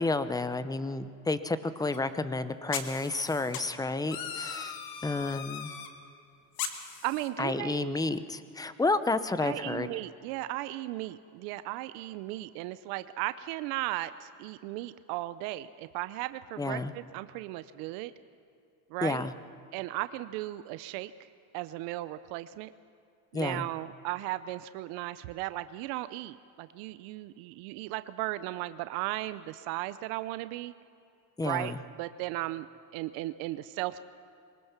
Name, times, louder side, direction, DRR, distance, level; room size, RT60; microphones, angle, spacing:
voice 1, 0.0-4.8 5.0-5.7 7.4-9.9 16.6-16.9 19.0-19.3 23.3-23.7 31.4-31.8, left 3 dB, 10° left, 12 dB, 0.8 m, -31 dB
sound 1, 1.9-2.0 2.7-3.6 4.1-5.9 6.6-7.3, left 7 dB, 65° left, 2.1 m, -38 dB
voice 2, 7.0-8.0 9.4-18.1 18.9-19.3 19.7-21.1 21.5-22.7 23.3-30.7 31.4-32.7 32.9-34.0, right 16 dB, 75° right, 13 dB, 0.7 m, -36 dB
23.0 x 19.5 x 6.0 m, 2.5 s
supercardioid pair, 115°, 38 cm